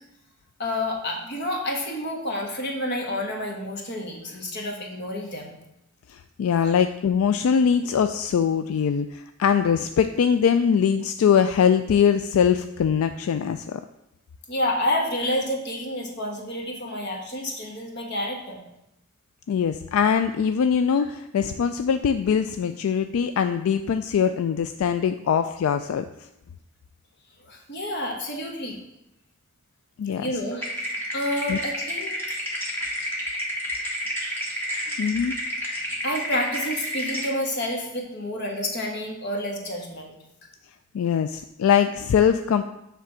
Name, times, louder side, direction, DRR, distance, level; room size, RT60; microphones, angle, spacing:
voice 1, 0.6-5.6 6.5-6.7 14.5-18.6 20.9-21.1 27.4-28.8 30.0-32.2 36.0-40.1, left 1 dB, 50° left, 1 dB, 1.4 m, -29 dB
voice 2, 6.1-13.8 19.5-26.1 30.0-30.3 31.5-31.6 35.0-35.3 40.9-42.6, left 7 dB, 80° left, 9 dB, 0.3 m, -22 dB
sound 1, 30.6-37.3, equal, 10° left, 1.3 m, -30 dB
7.3 x 3.4 x 6.2 m, 0.85 s
head